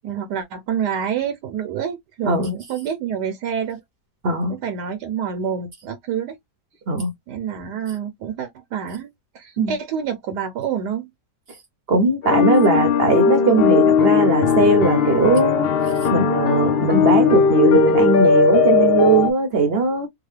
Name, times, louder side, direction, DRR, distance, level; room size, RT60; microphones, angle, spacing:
voice 1, 0.0-3.8 4.5-6.4 7.3-11.1, right 7 dB, 75° right, 1.3 m, -27 dB
voice 2, 4.2-4.6 6.9-7.1 9.6-9.7 11.9-15.7 16.1-20.1, right 3 dB, 50° right, 0.8 m, -19 dB
sound 1, 12.2-19.3, left 5 dB, 70° left, 0.5 m, -17 dB
3.6 x 2.2 x 3.2 m
omnidirectional pair, 1.9 m